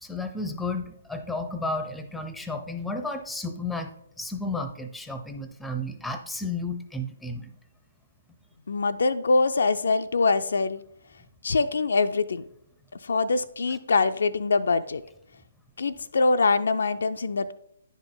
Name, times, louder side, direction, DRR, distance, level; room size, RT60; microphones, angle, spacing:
voice 1, 0.0-7.5, left 2 dB, ahead, 8 dB, 0.6 m, -33 dB
voice 2, 8.7-10.8 11.4-12.4 13.0-15.0 15.8-17.5, left 3 dB, 60° left, 10 dB, 0.3 m, -24 dB
10.0 x 5.1 x 3.8 m, 0.74 s
figure-of-eight pair, 130°, 0 cm